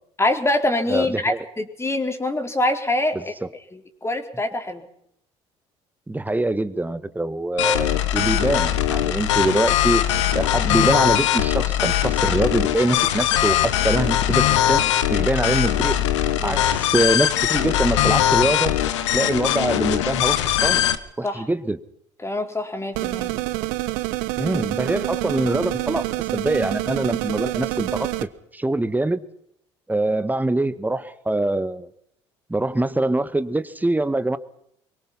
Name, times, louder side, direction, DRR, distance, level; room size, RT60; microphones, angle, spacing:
voice 1, 0.2-3.3 3.7-4.9 16.4-16.6 21.2-21.4 22.2-23.3, left 2 dB, 15° left, 5 dB, 4.3 m, -24 dB
voice 2, 0.9-1.5 3.4-3.5 6.1-10.1 10.3-14.8 15.1-16.0 16.4-18.8 19.1-20.9 21.2-21.8 23.3-23.4 24.4-26.1 26.3-29.2 29.9-31.9 32.5-34.4, right 2 dB, 10° right, 14 dB, 1.8 m, -24 dB
sound 1, 7.6-21.0, left 11 dB, 80° left, 1.4 m, -21 dB
sound 2, 22.9-28.2, right 18 dB, 70° right, 1.2 m, -27 dB
24.0 x 23.0 x 5.8 m, 0.72 s
hypercardioid pair, 55°, 15 cm